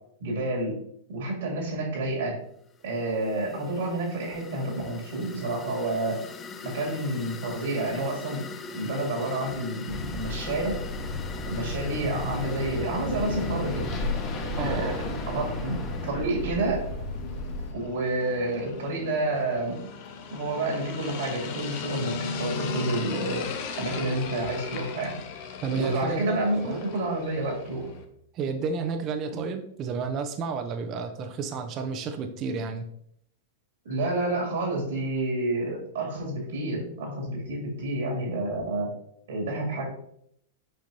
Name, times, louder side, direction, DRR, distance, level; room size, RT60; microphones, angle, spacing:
voice 1, 0.2-0.8 1.1-2.4 2.8-6.2 6.6-8.4 8.7-10.8 11.5-13.9 14.6-16.8 17.7-19.8 20.3-23.5 23.8-25.1 25.7-27.8 29.3-29.4 33.8-38.9 39.3-39.8, right 2 dB, 70° right, -1 dB, 2.6 m, -29 dB
sound 1, 2.7-16.1, left 4 dB, 25° left, 0.6 m, -43 dB
sound 2, 9.9-17.7, left 2 dB, 40° left, 1.7 m, -32 dB
voice 2, 14.6-15.0 25.6-26.8 28.3-32.9, right 5 dB, 40° right, 7 dB, 0.7 m, -31 dB
sound 3, 16.5-28.0, left 5 dB, 55° left, 0.9 m, -38 dB
7.6 x 5.1 x 2.8 m, 0.70 s
hypercardioid pair, 105°, 0 cm